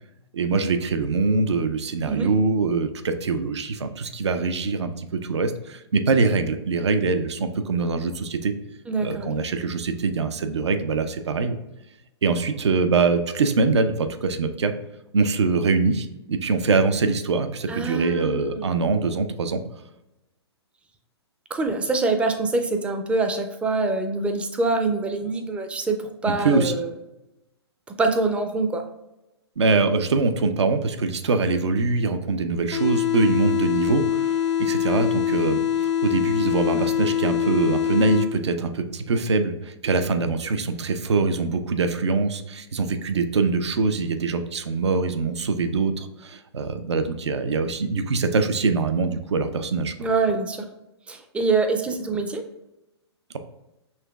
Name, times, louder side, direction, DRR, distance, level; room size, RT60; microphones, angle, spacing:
voice 1, 0.3-8.5 9.0-11.6 12.2-14.7 15.1-19.6 26.4-26.7 29.6-35.6 36.0-49.9, right 4 dB, 80° right, 9 dB, 0.5 m, -23 dB
voice 2, 8.9-9.3 17.7-18.7 21.5-26.9 28.0-28.8 50.0-50.7 51.1-52.4, right 3 dB, 10° right, 6 dB, 0.4 m, -25 dB
sound 1, 32.7-38.7, left 10 dB, 75° left, 0.6 m, -24 dB
5.6 x 3.1 x 2.3 m, 0.94 s
hypercardioid pair, 120°, 14 cm